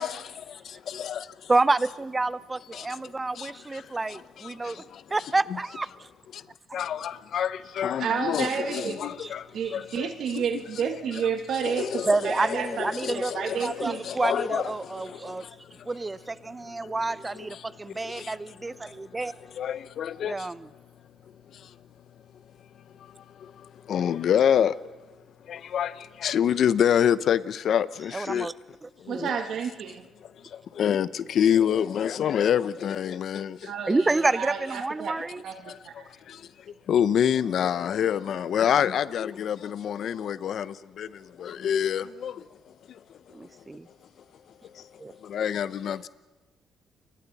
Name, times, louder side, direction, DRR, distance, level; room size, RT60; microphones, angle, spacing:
voice 1, 0.0-1.5 2.7-2.9 3.4-5.0 6.3-6.4 6.7-10.4 11.6-12.3 12.8-15.5 16.8-16.9 17.5-17.7 18.0-18.4 19.5-20.5 21.5-21.7 23.0-24.8 25.5-28.5 29.0-29.3 30.2-33.7 35.7-36.5 36.9-42.5 42.9-43.0 44.7-44.8 45.2-46.1, left 9 dB, 65° left, 0.7 m, -27 dB
voice 2, 1.5-4.8 5.1-5.9 9.2-9.3 12.1-15.5 15.9-19.3 20.2-20.7 28.1-28.5 28.8-29.3 33.9-35.4 43.3-43.9 45.0-45.1, right 3 dB, 20° right, 0.6 m, -28 dB
voice 3, 8.0-9.1 9.5-14.1 29.1-30.0 33.6-35.2 35.4-36.1, right 7 dB, 70° right, 1.5 m, -31 dB
29.5 x 23.5 x 4.2 m
cardioid pair, 90°, 0 cm